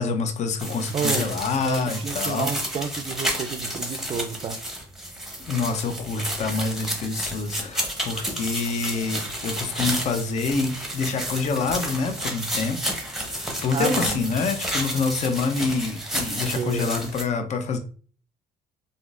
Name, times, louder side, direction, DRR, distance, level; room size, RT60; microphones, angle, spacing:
voice 1, 0.0-2.5 5.5-12.9 13.2-17.8, left 4 dB, 45° left, 0.6 m, -27 dB
sound 1, 0.6-17.2, right 1 dB, ahead, 0.8 m, -31 dB
voice 2, 0.9-4.6 13.7-14.3 16.6-17.1, right 6 dB, 30° right, 0.4 m, -30 dB
3.5 x 2.6 x 2.4 m
cardioid pair, 110°, 17 cm